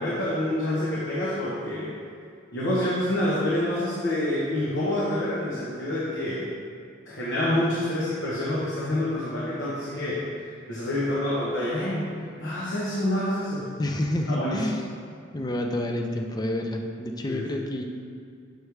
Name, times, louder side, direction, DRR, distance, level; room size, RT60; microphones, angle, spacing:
voice 1, 0.0-2.0 2.5-6.5 7.1-10.3 10.7-12.1 12.4-13.7 14.3-14.6 17.3-17.4, left 1 dB, 70° left, -8 dB, 1.0 m, -27 dB
voice 2, 13.8-14.8 15.3-17.8, left 1 dB, 20° left, 3 dB, 0.5 m, -28 dB
6.5 x 3.4 x 4.7 m, 2.3 s
head